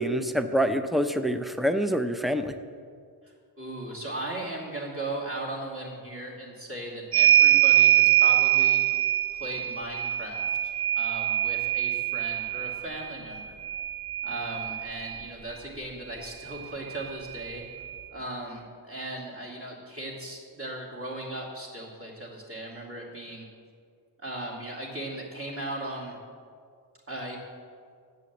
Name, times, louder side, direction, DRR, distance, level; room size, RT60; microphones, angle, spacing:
voice 1, 0.0-2.5, equal, ahead, 9 dB, 0.5 m, -26 dB
voice 2, 3.2-8.8 9.4-13.6 14.2-17.6 18.1-23.5 24.2-26.2 27.1-27.4, right 1 dB, 30° right, -3 dB, 2.5 m, -37 dB
sound 1, 7.1-15.2 16.5-16.6 16.9-18.0, right 13 dB, 60° right, 1.1 m, -24 dB
8.2 x 8.0 x 7.2 m, 2.1 s
wide cardioid pair, 75°, 46 cm